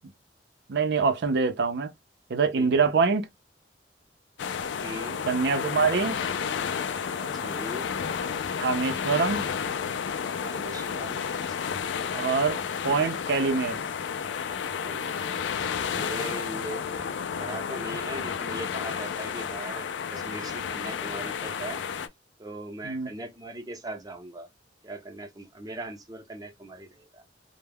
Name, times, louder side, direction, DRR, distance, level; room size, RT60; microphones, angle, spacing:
voice 1, 0.7-1.9 2.3-3.2 5.3-6.2 8.6-9.5 12.1-13.8 22.8-23.1, right 5 dB, 70° right, 0.5 m, -25 dB
voice 2, 2.5-2.9 4.8-5.2 7.2-7.9 10.4-11.8 14.8-15.3 15.7-21.8 22.4-24.5 24.8-27.2, right 1 dB, 20° right, 0.6 m, -40 dB
sound 1, 4.4-22.1, left 7 dB, 90° left, 0.4 m, -31 dB
2.2 x 2.0 x 3.3 m
head